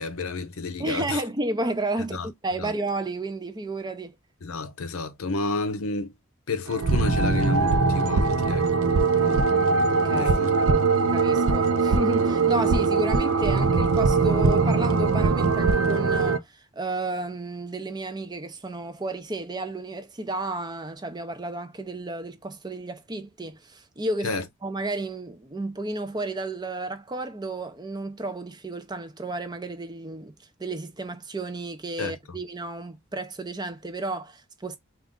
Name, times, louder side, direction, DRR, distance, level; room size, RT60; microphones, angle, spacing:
voice 1, 0.0-1.2 2.1-2.3 2.6-2.7 4.4-6.1 6.5-8.7 10.2-10.9 24.2-24.4 32.0-32.1, left 3 dB, 80° left, 0.7 m, -31 dB
voice 2, 0.8-4.2 9.1-9.5 9.9-30.3 30.6-34.8, right 2 dB, 20° right, 0.5 m, -32 dB
sound 1, 6.7-16.4, right 4 dB, 85° right, 0.6 m, -21 dB
3.8 x 2.4 x 3.6 m
head